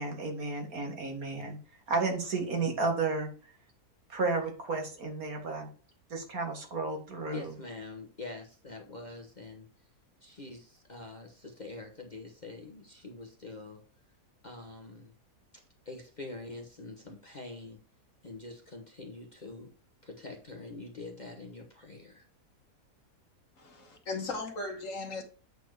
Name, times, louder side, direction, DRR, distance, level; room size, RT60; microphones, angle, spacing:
voice 1, 0.0-1.6 1.9-3.3 4.1-5.7 6.1-7.6, right 3 dB, 65° right, 3 dB, 2.1 m, -32 dB
voice 2, 7.3-9.7 10.2-13.8 14.4-15.1 15.8-17.8 18.2-19.7 20.0-22.3, left 3 dB, 30° left, 2 dB, 1.1 m, -45 dB
voice 3, 23.6-25.2, left 3 dB, 55° left, 5 dB, 1.6 m, -37 dB
8.2 x 4.3 x 4.6 m, 0.39 s
omnidirectional pair, 1.7 m